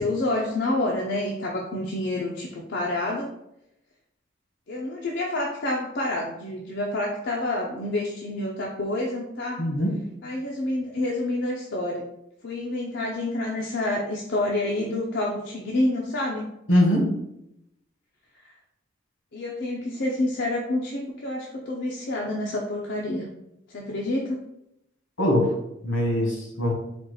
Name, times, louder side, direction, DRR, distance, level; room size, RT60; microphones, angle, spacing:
voice 1, 0.0-3.3 4.7-9.6 10.2-12.0 12.4-16.5 18.4-18.5 19.3-23.3 23.7-24.4, left 1 dB, 60° left, -2 dB, 0.6 m, -28 dB
voice 2, 9.6-10.0 16.7-17.1 25.2-25.5 25.8-26.7, left 1 dB, 75° left, 0 dB, 1.4 m, -22 dB
4.3 x 2.3 x 4.7 m, 0.81 s
head